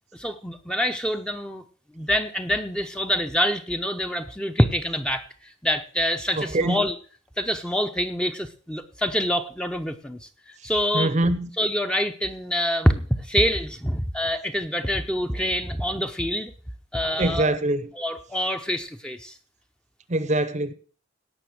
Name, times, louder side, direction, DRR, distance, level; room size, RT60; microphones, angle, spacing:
voice 1, 0.1-1.6 1.9-5.2 5.6-7.0 7.4-10.3 10.6-11.1 11.6-16.5 16.9-17.5 17.9-19.4, equal, 5° left, 0.7 m, -25 dB
voice 2, 6.4-6.9 10.9-11.5 17.2-17.9 20.1-20.7, right 1 dB, 35° right, 0.8 m, -23 dB
17.5 x 6.0 x 6.1 m
head